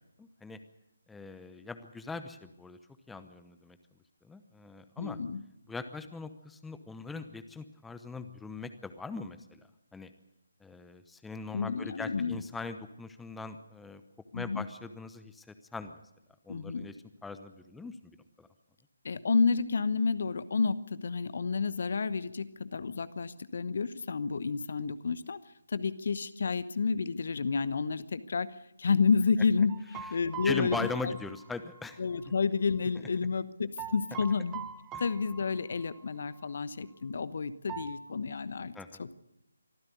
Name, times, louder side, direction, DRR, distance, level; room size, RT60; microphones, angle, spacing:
voice 1, 0.2-0.6 1.1-2.8 3.1-3.8 4.2-5.2 5.7-9.6 9.9-10.1 10.6-14.0 14.3-16.0 16.4-17.0 17.2-18.5 30.4-32.0 38.7-39.0, left 4 dB, 5° left, 10 dB, 0.9 m, -41 dB
voice 2, 5.0-5.4 11.5-12.4 14.3-14.6 16.5-16.9 19.0-25.4 25.7-28.5 28.8-30.8 31.0-31.1 32.0-34.6 35.0-38.7 39.0-39.2, left 5 dB, 45° left, 15 dB, 1.0 m, -30 dB
sound 1, 29.7-32.3 33.8-36.1 36.3-36.5 37.7-37.9, right 7 dB, 15° right, 1.6 m, -44 dB
24.5 x 14.5 x 8.3 m, 0.83 s
figure-of-eight pair, 150°, 0 cm